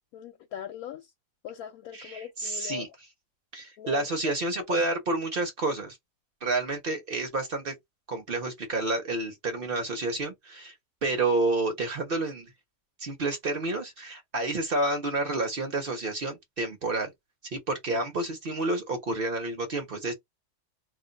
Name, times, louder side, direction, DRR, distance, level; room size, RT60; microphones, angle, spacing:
voice 1, 0.1-1.1 1.4-2.9 3.8-4.3 4.7-4.8, left 10 dB, 85° left, 1.0 m, -40 dB
voice 2, 1.9-2.9 3.5-6.0 6.4-7.7 8.1-10.7 11.0-12.5 13.0-17.1 17.5-20.1, right 2 dB, 50° right, 0.8 m, -29 dB
2.5 x 2.1 x 3.8 m
omnidirectional pair, 1.5 m